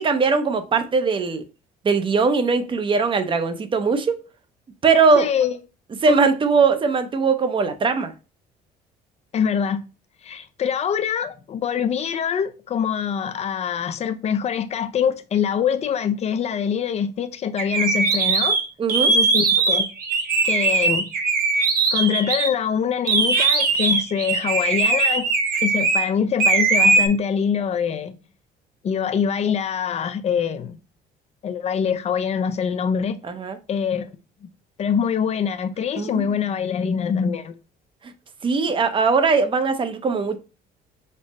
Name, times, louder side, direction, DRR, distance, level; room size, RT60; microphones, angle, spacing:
voice 1, 0.0-1.4 1.8-4.2 4.8-5.3 6.0-8.1 18.8-19.1 33.3-33.6 36.0-36.2 38.4-40.4, right 4 dB, 30° right, 0.6 m, -20 dB
voice 2, 5.2-5.6 6.1-6.2 9.3-9.8 10.2-18.6 19.1-19.9 20.4-21.1 21.9-25.3 25.6-28.2 28.8-30.8 31.4-33.2 33.7-34.1 34.4-34.5 34.8-37.6, left 7 dB, 40° left, 0.5 m, -24 dB
sound 1, 17.6-22.5 23.1-26.1 26.4-27.1, right 4 dB, 60° right, 0.9 m, -20 dB
5.4 x 2.0 x 3.9 m
cardioid pair, 110°, 17 cm